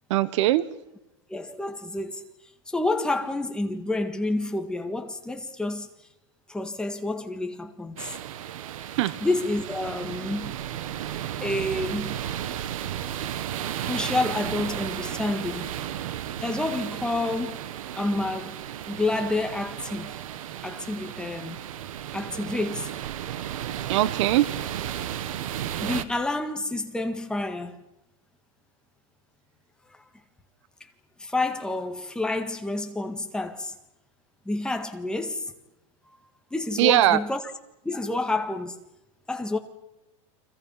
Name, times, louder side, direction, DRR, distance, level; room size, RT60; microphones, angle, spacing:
voice 1, 0.1-0.6 9.0-9.1 23.9-24.5 36.8-37.2, right 14 dB, 60° right, 1.1 m, -20 dB
voice 2, 1.3-2.2 2.7-5.9 6.5-8.1 9.2-10.6 11.4-12.2 13.8-15.7 16.4-17.6 18.0-18.5 18.8-20.1 20.6-21.6 22.1-22.9 25.2-25.3 25.8-27.8 31.2-33.7 34.4-35.4 36.1-36.2 36.5-37.4 37.8-38.8 39.3-39.6, left 2 dB, 5° left, 1.7 m, -29 dB
sound 1, 8.0-26.0, right 11 dB, 80° right, 1.7 m, -34 dB
30.0 x 25.0 x 5.7 m
supercardioid pair, 150°, 17 cm